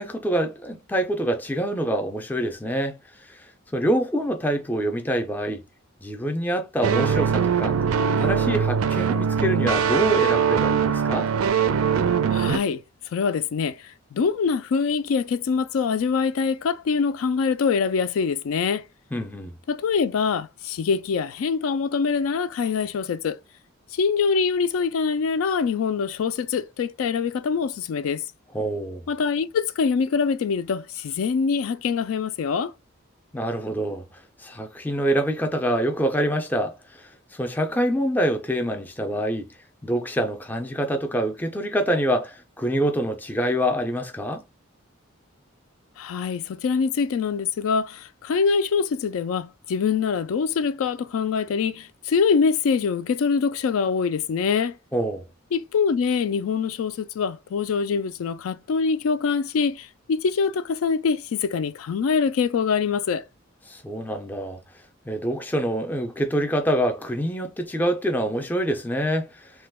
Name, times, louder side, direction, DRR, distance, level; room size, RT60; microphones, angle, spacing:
voice 1, 0.0-5.6 6.0-7.7 8.2-11.3 19.1-19.6 28.5-29.0 33.3-34.0 34.4-39.5 39.8-44.4 54.9-55.2 63.7-64.6 65.1-69.5, right 1 dB, 10° left, 0.4 m, -26 dB
sound 1, 6.8-12.6, right 7 dB, 90° right, 0.4 m, -22 dB
voice 2, 12.3-12.8 13.1-18.8 19.7-23.4 23.9-28.2 29.1-32.7 46.0-54.8 55.5-63.3, left 5 dB, 80° left, 0.3 m, -24 dB
2.9 x 2.2 x 3.3 m
head